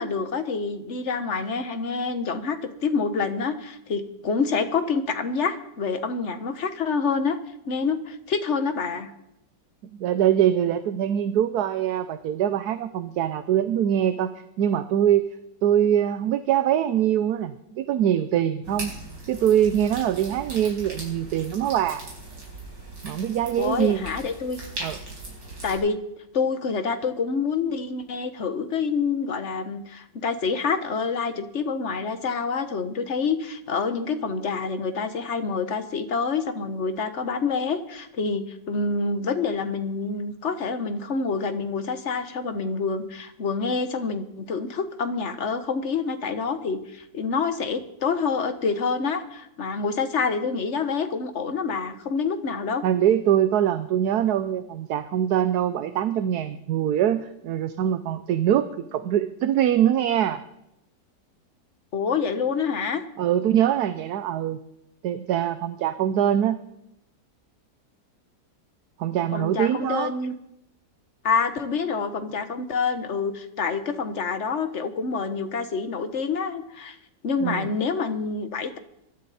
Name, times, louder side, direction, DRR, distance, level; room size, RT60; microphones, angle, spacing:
voice 1, 0.0-2.6 2.8-7.4 7.7-9.1 23.6-24.6 25.6-26.0 26.3-52.8 61.9-63.0 69.3-70.4 71.2-77.0 77.2-78.8, left 5 dB, 45° left, 8 dB, 1.4 m, -27 dB
voice 2, 10.0-14.3 14.6-15.3 15.6-19.0 19.3-22.0 23.0-24.1 24.8-25.0 52.8-60.4 63.2-64.6 65.0-66.6 69.0-70.1 77.4-77.7, right 10 dB, 70° right, 11 dB, 1.2 m, -23 dB
sound 1, 18.6-25.8, right 2 dB, 90° right, 5.5 m, -39 dB
22.0 x 13.0 x 4.3 m, 0.83 s
omnidirectional pair, 1.9 m